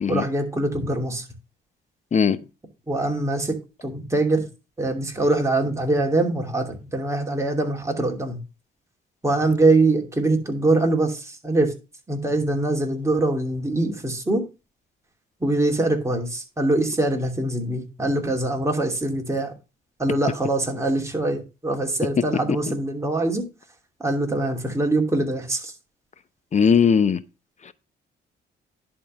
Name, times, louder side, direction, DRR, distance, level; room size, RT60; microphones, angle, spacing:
voice 1, 0.1-1.2 2.9-3.6 3.8-4.5 4.8-8.4 9.2-11.7 12.1-14.4 15.4-19.5 20.0-23.5 24.0-25.7, right 2 dB, 15° right, 2.7 m, -23 dB
voice 2, 26.5-27.2, left 6 dB, 35° left, 0.7 m, -18 dB
11.0 x 3.9 x 6.6 m
cardioid pair, 90°, 20 cm